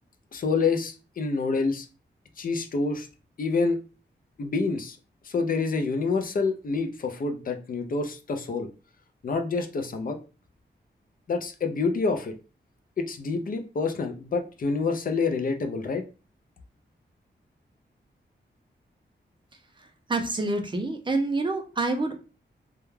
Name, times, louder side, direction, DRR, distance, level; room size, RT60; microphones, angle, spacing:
voice 1, 0.3-1.9 2.4-3.1 3.4-3.8 4.4-5.0 5.2-8.7 9.2-10.2 11.3-12.3 13.0-16.0, left 4 dB, 50° left, 6 dB, 0.5 m, -27 dB
voice 2, 20.1-22.1, right 2 dB, 25° right, 5 dB, 0.5 m, -27 dB
2.3 x 2.1 x 3.1 m, 0.33 s
wide cardioid pair, 120°, 19 cm